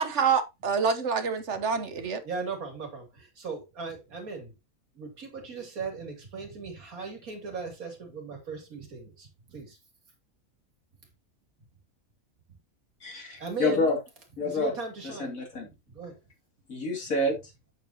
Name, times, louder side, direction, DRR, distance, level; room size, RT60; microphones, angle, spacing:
voice 1, 0.0-2.2, right 6 dB, 55° right, 1.3 m, -26 dB
voice 2, 2.2-4.5 4.9-9.8 12.5-12.6 13.4-14.0 14.4-15.4 15.6-16.2, right 4 dB, 85° right, 3.1 m, -38 dB
voice 3, 13.0-14.0 14.4-14.7 15.2-15.7 16.7-17.4, left 2 dB, 70° left, 3.0 m, -28 dB
8.0 x 7.3 x 2.8 m
omnidirectional pair, 1.5 m